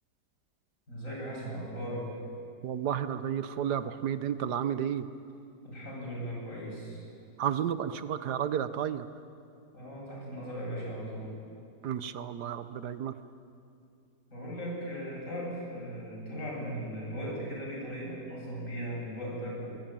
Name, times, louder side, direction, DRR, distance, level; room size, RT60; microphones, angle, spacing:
voice 1, 0.9-2.1 5.6-7.0 9.7-11.3 14.3-19.7, equal, 55° left, -3 dB, 8.4 m, -38 dB
voice 2, 2.6-5.1 7.4-9.1 11.8-13.1, right 9 dB, 90° right, 12 dB, 1.5 m, -32 dB
24.0 x 20.5 x 9.1 m, 2.5 s
omnidirectional pair, 1.7 m